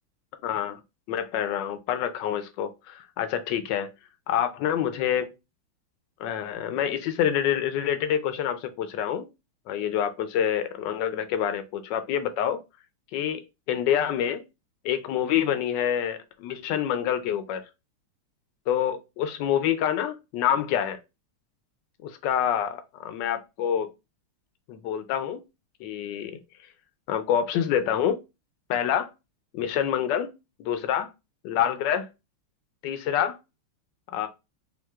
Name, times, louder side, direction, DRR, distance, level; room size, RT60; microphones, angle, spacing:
voice 1, 0.4-0.8 1.1-3.9 4.3-5.3 6.2-9.3 9.7-12.6 13.1-13.4 13.7-14.4 14.8-17.6 18.7-21.0 22.0-23.9 24.7-25.4 25.8-26.4 27.1-28.2 28.7-29.1 29.5-30.3 30.6-31.1 31.4-32.1 32.8-33.4 34.1-34.3, left 9 dB, 75° left, 1.0 m, -27 dB
5.5 x 2.6 x 2.3 m
omnidirectional pair, 2.3 m